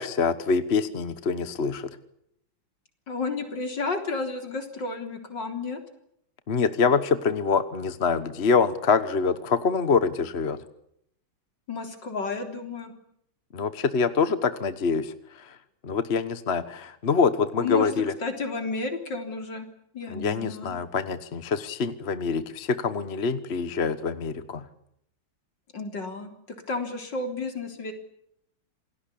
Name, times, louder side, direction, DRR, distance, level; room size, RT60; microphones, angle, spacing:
voice 1, 0.0-1.9 6.5-10.6 13.5-15.1 15.8-18.1 20.1-24.6, left 5 dB, 40° left, 13 dB, 1.3 m, -25 dB
voice 2, 3.1-5.8 11.7-12.9 17.6-17.9 18.2-19.7 19.9-20.8 25.7-26.3 26.7-27.9, left 3 dB, 65° left, 6 dB, 4.3 m, -31 dB
28.0 x 19.0 x 8.5 m, 0.74 s
omnidirectional pair, 2.1 m